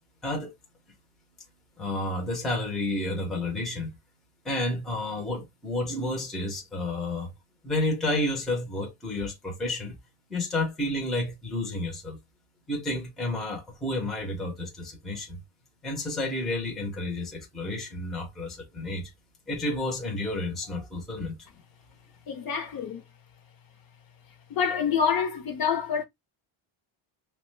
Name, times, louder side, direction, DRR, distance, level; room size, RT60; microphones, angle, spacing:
voice 1, 1.8-3.9 4.4-7.3 7.6-9.9 10.3-12.2 12.7-15.4 15.8-19.1 19.5-21.3, left 2 dB, ahead, 0.4 m, -31 dB
voice 2, 22.3-23.0 24.5-26.0, left 7 dB, 45° left, 0.6 m, -27 dB
2.8 x 2.1 x 3.0 m
cardioid pair, 165°, 49 cm